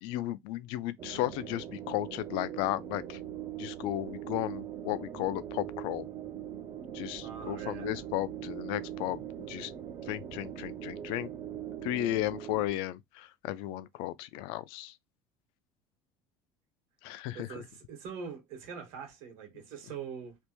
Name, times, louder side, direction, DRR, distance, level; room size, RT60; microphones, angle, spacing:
voice 1, 0.0-3.2 3.6-6.1 6.9-9.7 10.1-11.3 11.8-14.9 17.0-17.6, left 15 dB, 60° left, 0.4 m, -34 dB
sound 1, 1.0-12.7, right 10 dB, 30° right, 0.4 m, -41 dB
voice 2, 7.2-8.0 17.3-20.4, right 6 dB, 65° right, 1.6 m, -43 dB
3.3 x 2.5 x 3.0 m
cardioid pair, 165°, 10 cm